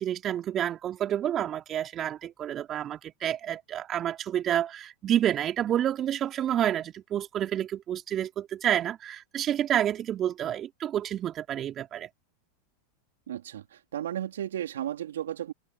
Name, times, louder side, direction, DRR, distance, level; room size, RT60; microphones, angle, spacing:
voice 1, 0.0-12.1, right 10 dB, 35° right, 3.7 m, -29 dB
voice 2, 13.3-15.5, right 11 dB, 75° right, 3.3 m, -34 dB
hypercardioid pair, 90°, 0 cm